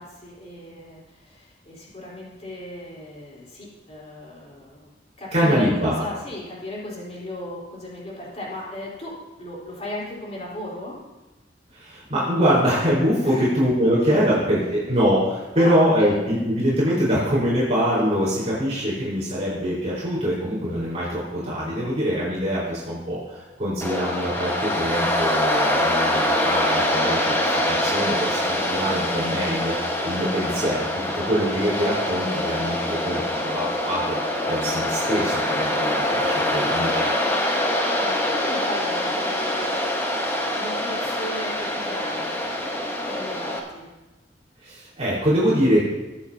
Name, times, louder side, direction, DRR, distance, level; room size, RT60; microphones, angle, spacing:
voice 1, 0.0-4.9 5.2-11.0 13.2-13.5 14.1-14.4 14.7-14.8 15.5-16.2 37.5-39.8 40.0-42.4 43.0-43.9, left 1 dB, 40° left, -5 dB, 4.3 m, -36 dB
voice 2, 5.3-6.0 11.7-32.8 33.0-37.0 44.6-45.8, equal, 40° right, -8 dB, 4.7 m, -24 dB
Waves surf, 23.8-43.6, left 1 dB, 15° left, 1.5 m, -24 dB
22.0 x 8.1 x 2.9 m, 1.1 s
head